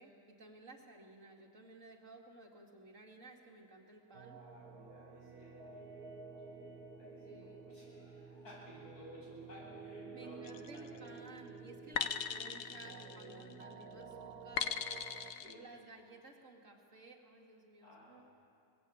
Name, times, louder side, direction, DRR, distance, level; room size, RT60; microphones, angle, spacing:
voice 1, 0.0-4.4 7.2-7.8 10.1-18.2, right 3 dB, 55° right, 1 dB, 2.4 m, -56 dB
sound 1, 4.1-15.3, right 4 dB, 85° right, 1.7 m, -51 dB
voice 2, 4.4-5.9 6.2-6.5 7.0-11.2 15.3-15.6 17.8-18.2, equal, 90° left, -5 dB, 8.8 m, -56 dB
sound 2, 10.4-10.9 12.0-13.6 14.6-15.5, left 8 dB, 65° left, 1.2 m, -39 dB
23.5 x 20.0 x 8.4 m, 2.6 s
omnidirectional pair, 1.6 m